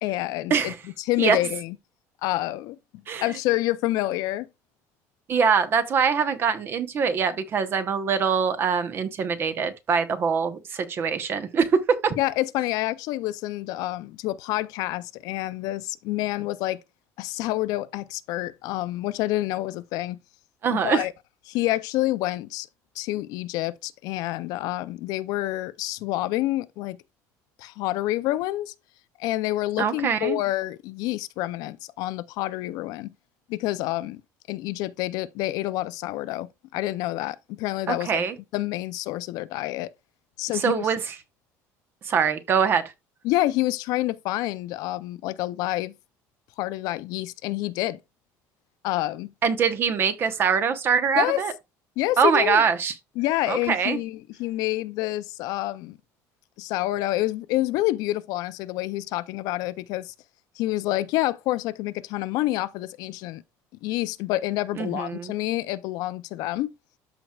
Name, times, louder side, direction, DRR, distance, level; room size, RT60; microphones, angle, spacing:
voice 1, 0.0-1.7 2.2-2.8 3.2-4.5 12.2-16.8 17.2-20.2 20.7-21.1 21.5-22.7 23.0-27.0 27.6-28.7 29.2-33.1 33.5-34.2 34.5-38.2 38.5-39.9 40.4-40.9 43.2-45.9 46.6-48.0 48.8-49.3 51.2-51.4 52.0-52.6 53.2-56.0 56.6-60.1 60.6-63.4 63.8-66.7, left 16 dB, 70° left, 0.4 m, -28 dB
voice 2, 5.3-12.1 20.6-21.1 29.8-30.4 37.9-38.3 40.5-41.2 42.0-42.8 49.4-51.5 52.2-52.9 53.5-54.0 64.8-65.3, right 6 dB, 35° right, 0.9 m, -23 dB
13.0 x 4.4 x 2.3 m
cardioid pair, 150°, 7 cm